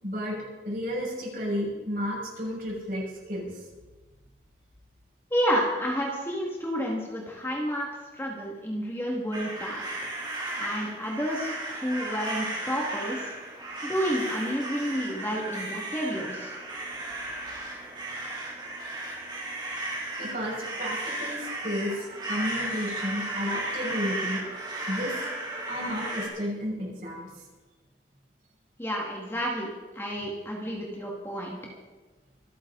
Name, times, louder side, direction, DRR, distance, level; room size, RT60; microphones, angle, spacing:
voice 1, 0.0-3.5 20.2-24.4 24.9-25.1 25.7-27.3, equal, 50° right, -4 dB, 6.3 m, -32 dB
voice 2, 5.3-7.9 8.1-9.8 10.6-11.5 11.8-13.3 13.8-16.5 28.8-31.6, equal, 15° left, -2 dB, 2.3 m, -30 dB
sound 1, 9.3-26.3, right 2 dB, 25° right, 2.9 m, -35 dB
26.0 x 10.0 x 4.1 m, 1.2 s
head